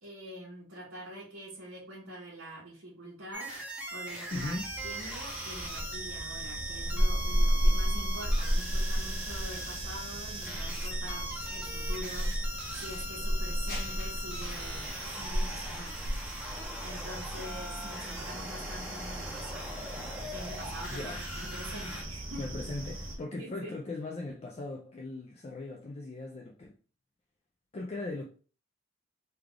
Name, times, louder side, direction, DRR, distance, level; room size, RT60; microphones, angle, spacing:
voice 1, 0.0-4.5 4.8-16.0 16.8-19.7 20.3-22.4 23.4-23.8, right 1 dB, 70° right, 1.3 m, -45 dB
sound 1, 3.3-22.0, equal, 5° right, 0.7 m, -41 dB
voice 2, 4.3-4.7 20.9-21.2 22.4-26.7 27.7-28.3, left 2 dB, 30° left, 0.3 m, -38 dB
sound 2, 4.3-23.2, right 2 dB, 40° right, 1.1 m, -42 dB
sound 3, 5.6-16.7, equal, 45° left, 0.7 m, -32 dB
3.3 x 2.3 x 3.6 m
head